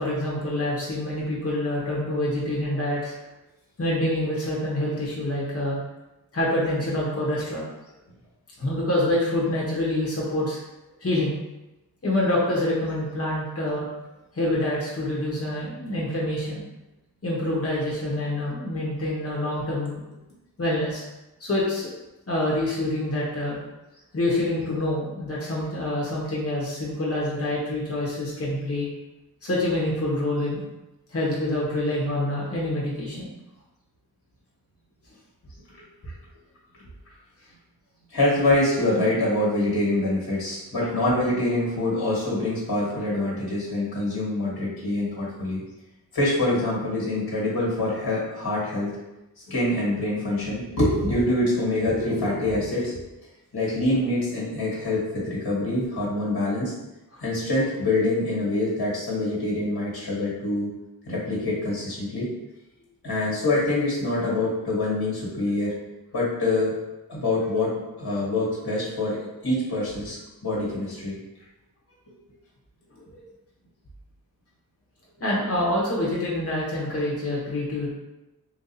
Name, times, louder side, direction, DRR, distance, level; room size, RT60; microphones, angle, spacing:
voice 1, 0.0-3.1 3.8-5.8 6.3-7.7 8.6-10.6 11.0-11.3 12.0-13.9 14.3-16.6 17.2-20.0 20.6-21.0 21.4-21.9 22.3-23.6 24.1-28.9 29.4-30.6 31.1-33.3 40.8-40.9 57.1-57.2 73.1-73.2 75.2-77.9, left 1 dB, 40° left, -5 dB, 1.0 m, -26 dB
voice 2, 38.1-45.6 46.1-49.0 49.5-53.0 53.5-56.7 57.2-60.7 61.1-62.3 63.0-65.7 66.1-66.7 67.1-69.2 69.4-71.2, left 1 dB, 85° left, -6 dB, 1.5 m, -25 dB
3.9 x 2.5 x 2.7 m, 0.98 s
wide cardioid pair, 70°, 38 cm